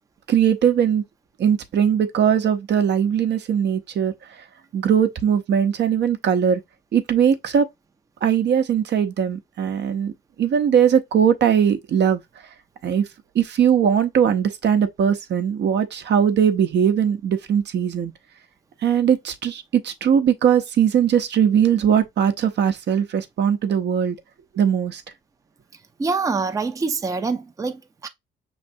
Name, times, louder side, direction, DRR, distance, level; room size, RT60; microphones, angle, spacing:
voice 1, 0.3-1.0 1.4-4.1 4.7-6.6 6.9-7.7 8.2-10.1 10.4-12.2 12.8-13.0 13.3-18.1 18.8-24.2 24.5-25.0, right 8 dB, 60° right, 0.7 m, -20 dB
voice 2, 26.0-28.1, right 4 dB, 15° right, 0.5 m, -25 dB
5.2 x 3.2 x 2.6 m
cardioid pair, 90°, 20 cm